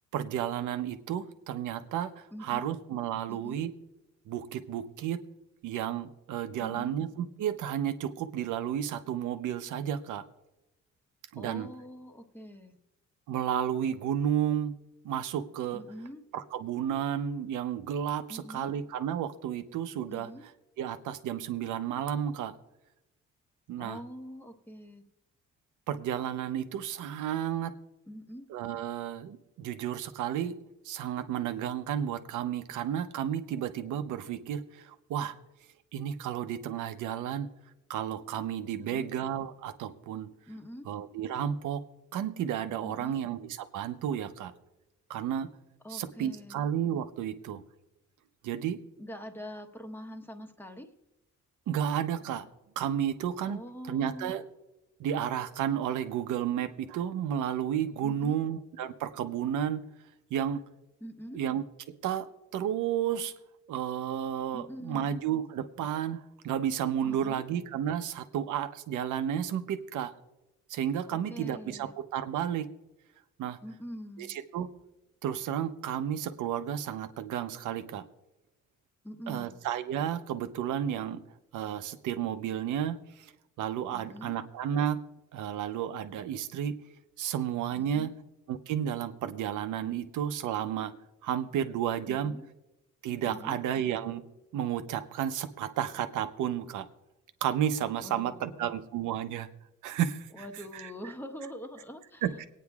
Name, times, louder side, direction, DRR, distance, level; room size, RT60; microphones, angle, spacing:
voice 1, 0.1-3.7 4.3-5.2 5.6-10.2 11.3-11.7 13.3-14.7 15.0-15.8 16.3-20.3 20.8-22.5 23.7-24.0 25.9-27.8 28.5-30.6 30.8-35.3 35.9-37.5 37.9-40.3 40.8-41.8 42.1-44.5 45.1-45.5 45.9-47.6 48.4-48.8 51.7-52.5 52.8-54.4 55.0-59.8 60.3-60.6 61.3-61.6 62.0-62.3 62.5-63.3 63.7-70.1 70.7-72.7 73.4-73.6 74.2-74.7 75.2-78.0 79.3-81.2 81.5-83.3 83.6-85.0 85.3-86.7 87.2-88.1 88.5-90.9 91.2-92.3 93.0-94.2 94.5-96.9 97.4-99.5 99.8-100.5 100.7-100.9 102.2-102.5, right 9 dB, 80° right, 9 dB, 0.8 m, -32 dB
voice 2, 2.3-2.8 3.3-3.6 6.6-7.0 11.3-12.8 15.7-16.2 18.3-18.7 20.1-20.4 23.8-25.0 28.1-28.5 38.7-39.1 40.5-40.9 42.8-43.2 45.8-46.6 49.0-50.9 53.5-54.4 58.0-58.5 61.0-61.4 64.5-65.1 67.0-67.4 71.1-71.9 73.6-74.3 79.0-79.5 83.9-84.4 87.8-88.2 92.1-92.5 93.2-93.6 98.0-98.7 100.3-102.5, equal, 5° left, 5 dB, 1.2 m, -44 dB
27.0 x 9.2 x 2.4 m, 0.94 s
cardioid pair, 90°, 30 cm